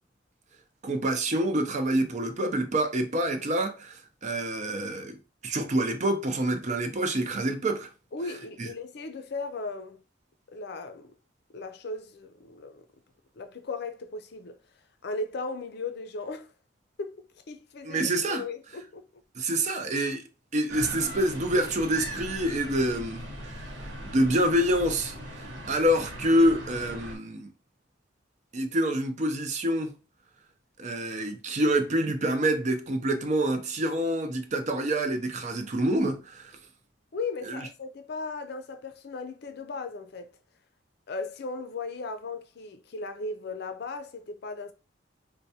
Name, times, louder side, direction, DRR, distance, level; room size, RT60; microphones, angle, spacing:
voice 1, 0.8-5.2 5.4-7.9 17.8-18.4 19.4-20.2 20.5-23.2 24.0-27.5 28.5-29.9 30.8-36.5 37.5-37.6, right 1 dB, 40° right, 0.5 m, -27 dB
voice 2, 8.1-10.0 10.5-11.1 11.5-12.9 13.3-14.6 15.0-16.5 17.0-19.2 37.1-40.4 41.1-44.7, left 3 dB, 60° left, 0.5 m, -37 dB
sound 1, 20.7-27.2, right 1 dB, 85° right, 1.1 m, -39 dB
4.5 x 2.2 x 2.7 m
head